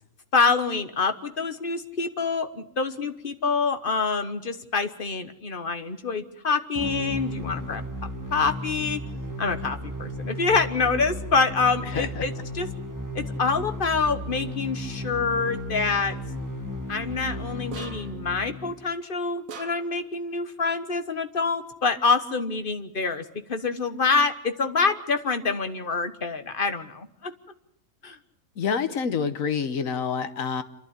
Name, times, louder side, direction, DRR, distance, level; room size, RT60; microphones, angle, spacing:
voice 1, 0.3-7.9 8.3-9.0 9.4-12.7 13.1-16.1 16.9-27.3 28.0-28.2, left 4 dB, 45° left, 10 dB, 1.3 m, -26 dB
sound 1, 6.8-18.7, left 1 dB, 15° right, 2.0 m, -34 dB
voice 2, 11.9-12.2 28.6-30.6, left 6 dB, 85° left, 11 dB, 1.5 m, -27 dB
sound 2, 17.7-18.3 19.5-20.1, right 6 dB, 90° right, 1.5 m, -41 dB
27.5 x 11.5 x 9.8 m, 0.79 s
omnidirectional pair, 1.4 m